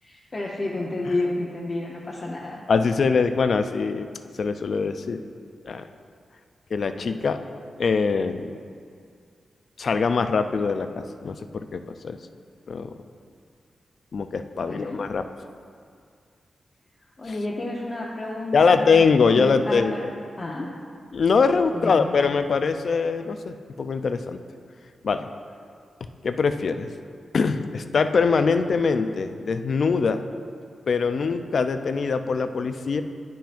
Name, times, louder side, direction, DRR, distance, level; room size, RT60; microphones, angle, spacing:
voice 1, 0.0-2.6 14.6-15.0 17.2-19.0 19.3-20.1 20.4-20.7 21.7-22.1, left 2 dB, 40° left, -4 dB, 0.7 m, -30 dB
voice 2, 2.7-4.1 4.4-5.2 5.6-5.9 6.7-7.4 7.8-8.5 9.8-12.2 12.7-12.9 14.1-15.3 18.5-20.1 21.1-24.4 25.0-25.3 26.2-26.9 27.3-30.2 30.9-33.0, left 5 dB, 65° left, 9 dB, 0.3 m, -23 dB
10.0 x 5.7 x 2.5 m, 2.2 s
cardioid pair, 80°, 0 cm